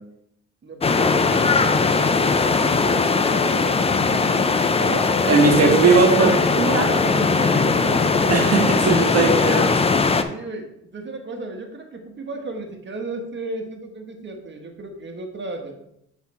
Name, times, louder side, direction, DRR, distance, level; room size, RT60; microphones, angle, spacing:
voice 1, 0.6-5.7 6.8-8.8 10.2-15.7, right 2 dB, 40° right, 3 dB, 1.4 m, -34 dB
sound 1, 0.8-10.2, left 4 dB, 20° left, 0.5 m, -19 dB
voice 2, 5.3-6.9 8.3-10.1, right 4 dB, 55° right, 2 dB, 1.4 m, -19 dB
8.1 x 4.1 x 4.3 m, 0.79 s
cardioid pair, 90°, 30 cm